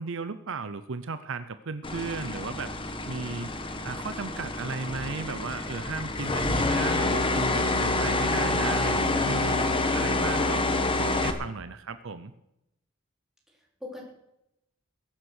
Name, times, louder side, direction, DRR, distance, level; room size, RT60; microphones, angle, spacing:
voice 1, 0.0-2.7 3.1-3.5 3.8-10.7 11.0-12.3, right 4 dB, 60° right, 11 dB, 0.7 m, -35 dB
sound 1, 1.8-11.3, left 2 dB, 25° left, 1.2 m, -27 dB
voice 2, 9.9-10.5 13.5-14.1, left 2 dB, ahead, -3 dB, 4.3 m, -44 dB
22.0 x 7.4 x 6.4 m, 0.84 s
head